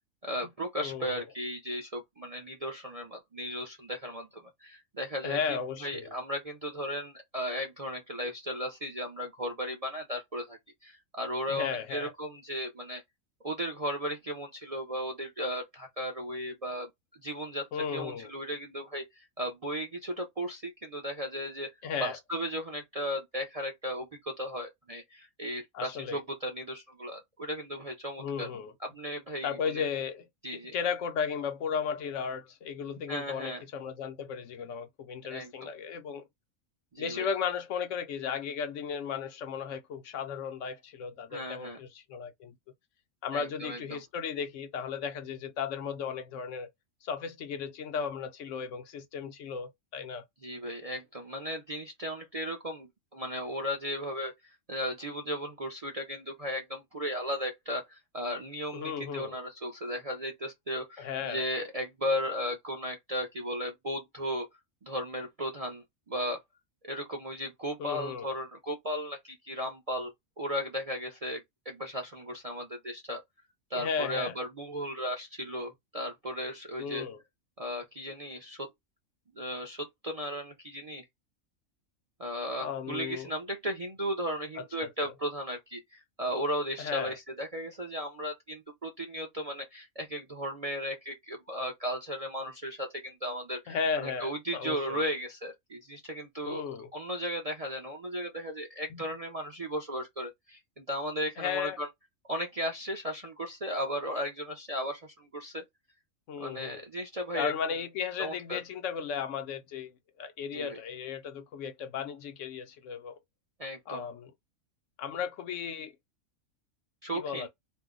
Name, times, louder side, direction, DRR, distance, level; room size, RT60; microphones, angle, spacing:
voice 1, 0.2-4.3 4.6-13.0 13.4-16.9 17.2-21.7 22.0-28.5 28.8-29.8 30.4-30.7 33.1-33.6 35.3-35.7 36.9-37.3 41.3-41.8 43.3-44.0 50.4-64.5 64.8-66.4 66.8-70.1 70.4-73.2 73.7-77.1 77.6-78.7 79.3-81.0 82.2-96.6 96.9-101.9 102.3-105.6 106.4-107.5 108.2-108.6 110.5-110.8 113.6-114.0 117.0-117.5, equal, 40° right, 0.5 m, -36 dB
voice 2, 0.8-1.2 5.2-6.1 11.5-12.1 17.7-18.3 21.8-22.2 25.7-26.2 28.2-28.7 29.4-36.2 37.0-42.5 43.2-46.7 47.0-50.3 58.7-59.4 61.0-61.4 67.8-68.3 73.7-74.4 76.8-77.2 82.5-83.3 84.6-84.9 86.8-87.2 93.7-95.0 96.5-96.9 98.9-99.0 101.4-101.8 106.3-106.8 107.3-109.9 110.2-113.2 113.9-114.3 115.0-115.9 117.1-117.5, left 6 dB, 70° left, 0.8 m, -35 dB
2.6 x 2.1 x 3.6 m
omnidirectional pair, 1.4 m